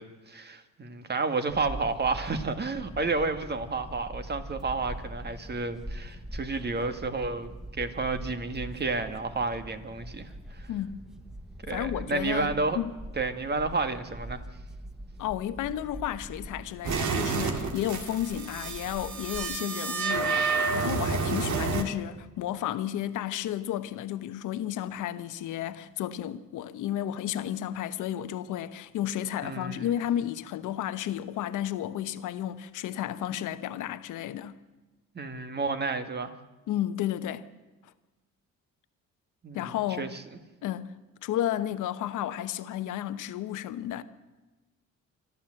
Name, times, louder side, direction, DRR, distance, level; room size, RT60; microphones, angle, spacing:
voice 1, 0.0-7.5 7.8-10.7 11.6-12.8 13.2-14.4 29.4-29.9 35.2-36.3 39.4-40.2, right 3 dB, 35° right, 1.9 m, -31 dB
sound 1, 1.5-19.6, right 1 dB, ahead, 1.0 m, -43 dB
voice 2, 10.7-11.0 11.7-12.9 15.2-20.4 20.7-34.5 36.7-37.5 39.5-40.2 40.6-40.9 41.2-44.0, left 11 dB, 85° left, 1.1 m, -32 dB
sound 2, 16.8-21.8, right 4 dB, 70° right, 2.2 m, -29 dB
26.5 x 12.5 x 7.8 m
cardioid pair, 90°, 30 cm